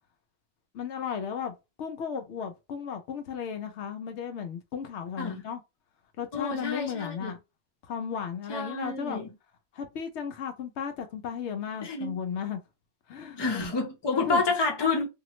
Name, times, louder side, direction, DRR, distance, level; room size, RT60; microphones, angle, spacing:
voice 1, 0.7-5.6 6.2-7.4 7.8-9.2 9.7-12.6 13.1-13.6 14.1-14.4, left 7 dB, 70° left, 0.8 m, -35 dB
voice 2, 6.3-7.3 8.5-9.3 11.8-12.2 13.4-15.1, left 3 dB, 25° left, 0.7 m, -29 dB
2.9 x 2.4 x 3.0 m
omnidirectional pair, 1.2 m